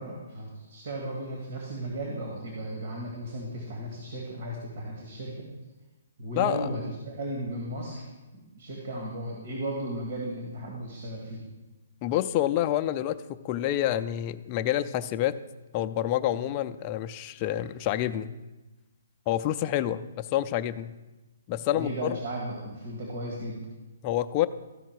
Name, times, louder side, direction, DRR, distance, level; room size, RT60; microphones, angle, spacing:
voice 1, 0.0-5.5 6.2-8.0 8.3-11.5 21.5-23.7, right 1 dB, 55° right, -1 dB, 1.9 m, -35 dB
voice 2, 6.4-6.7 12.0-13.2 13.4-15.4 15.7-18.3 19.3-20.9 21.5-22.2 24.0-24.5, left 12 dB, 25° left, 8 dB, 0.4 m, -28 dB
14.0 x 5.0 x 4.7 m, 1.1 s
hypercardioid pair, 165°, 0 cm